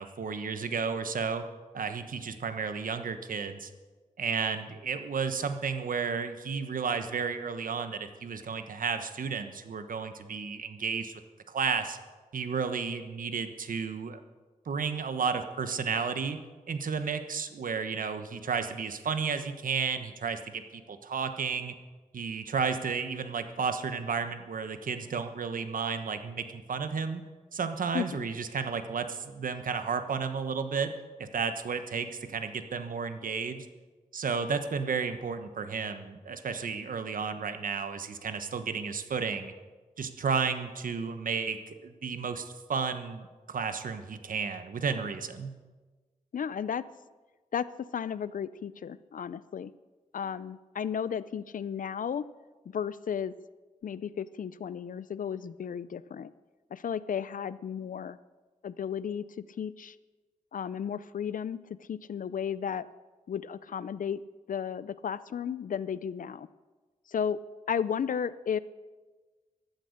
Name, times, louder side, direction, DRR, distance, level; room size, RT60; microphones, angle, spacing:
voice 1, 0.0-1.4 1.7-3.7 4.2-11.1 11.5-12.0 12.3-14.2 14.7-16.4 16.7-21.7 22.1-27.2 27.5-30.9 31.2-33.7 34.1-39.5 40.0-45.5, right 5 dB, 80° right, 9 dB, 1.2 m, -32 dB
voice 2, 27.9-28.3 46.3-46.8 47.5-47.6 47.9-49.7 50.1-52.2 52.7-53.3 53.8-56.3 56.7-58.2 58.6-59.2 59.6-59.9 60.5-61.6 61.9-62.9 63.3-64.2 64.5-66.5 67.1-67.4 67.7-68.6, left 8 dB, 75° left, 17 dB, 0.5 m, -33 dB
15.5 x 12.0 x 6.6 m, 1.3 s
wide cardioid pair, 160°, 14 cm